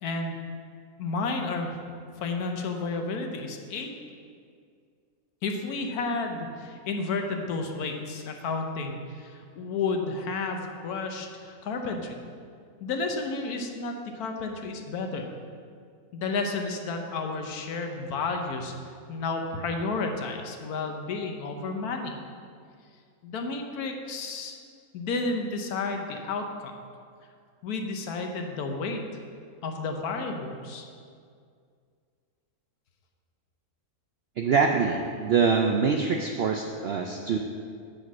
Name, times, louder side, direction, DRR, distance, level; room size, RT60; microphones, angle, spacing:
voice 1, 0.0-0.4 1.0-1.8 2.2-3.9 5.4-12.1 12.8-15.3 16.1-18.7 19.1-22.1 23.2-24.6 24.9-26.4 27.6-29.0 29.6-30.9, left 3 dB, 80° left, 4 dB, 1.3 m, -31 dB
voice 2, 34.4-37.4, right 5 dB, 75° right, 3 dB, 0.5 m, -24 dB
7.6 x 5.1 x 6.1 m, 2.2 s
omnidirectional pair, 1.6 m